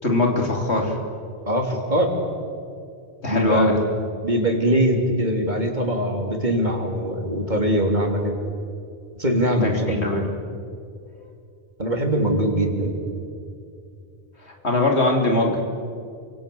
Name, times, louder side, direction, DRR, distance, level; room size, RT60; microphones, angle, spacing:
voice 1, 0.0-1.0 3.2-3.8 9.5-10.3 14.6-15.6, left 2 dB, 70° left, 1 dB, 3.5 m, -21 dB
voice 2, 1.5-2.1 3.3-3.8 4.2-8.3 9.1-10.1 11.8-13.0, equal, 40° right, 2 dB, 3.4 m, -22 dB
28.5 x 25.5 x 7.0 m, 2.4 s
omnidirectional pair, 1.1 m